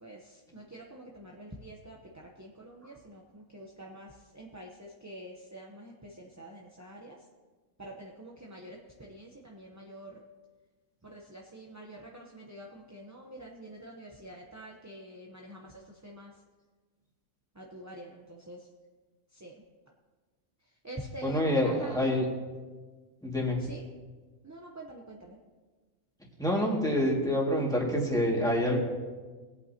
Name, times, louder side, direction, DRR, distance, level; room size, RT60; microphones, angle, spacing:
voice 1, 0.0-7.2 7.8-10.2 11.0-15.7 16.0-16.3 17.6-18.6 19.4-19.5 20.8-22.2 23.7-23.8 24.4-25.4, right 1 dB, 15° right, -1 dB, 0.7 m, -46 dB
voice 2, 21.2-22.3 23.2-23.6 26.4-28.8, left 1 dB, 5° left, -2 dB, 2.0 m, -27 dB
21.0 x 8.6 x 2.9 m, 1.4 s
omnidirectional pair, 1.5 m